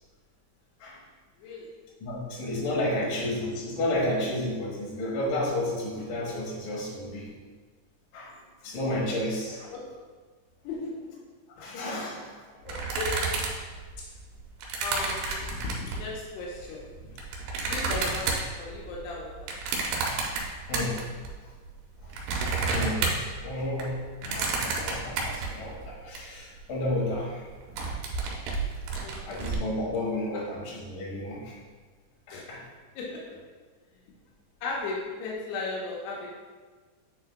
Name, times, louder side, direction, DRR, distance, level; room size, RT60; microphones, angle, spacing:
voice 1, 1.4-1.7 9.5-9.8 10.6-11.2 11.6-11.7 12.6-13.2 13.6-13.7 14.0-14.1 14.8-16.9 17.6-19.4 28.9-29.5 30.3-30.4 32.3-32.5 33.0-33.4 34.6-36.3, left 3 dB, 85° left, -3 dB, 2.9 m, -36 dB
voice 2, 2.0-7.3 8.1-8.3 8.6-9.6 11.6-12.4 20.7-21.0 22.0-22.1 22.7-23.0 23.4-27.5 29.3-31.5 32.3-32.6, left 1 dB, 65° left, -4 dB, 2.8 m, -31 dB
sound 1, 12.7-16.1 16.8-21.3 21.6-26.2 26.6-26.7 26.9-27.2 27.5-29.6, right 4 dB, 90° right, 3.1 m, -31 dB
9.2 x 4.5 x 2.2 m, 1.4 s
omnidirectional pair, 4.7 m